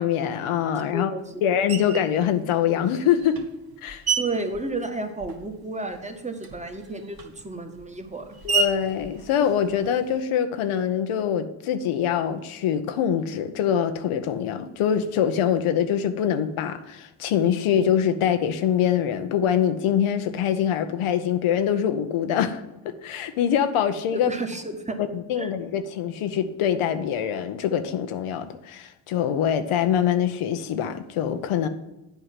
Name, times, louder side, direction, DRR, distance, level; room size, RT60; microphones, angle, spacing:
voice 1, 0.0-1.1 1.4-3.4 3.8-4.0 8.4-22.6 23.0-24.3 25.1-31.7, left 9 dB, 85° left, 9 dB, 0.8 m, -24 dB
voice 2, 0.9-1.6 4.2-8.4 24.1-24.9 25.3-25.5, right 2 dB, 15° right, 6 dB, 1.3 m, -32 dB
Screech, 1.7-2.2 2.9-5.6 5.9-10.2, right 5 dB, 50° right, 1.2 m, -32 dB
8.2 x 4.7 x 7.3 m, 0.96 s
supercardioid pair, 55°, 49 cm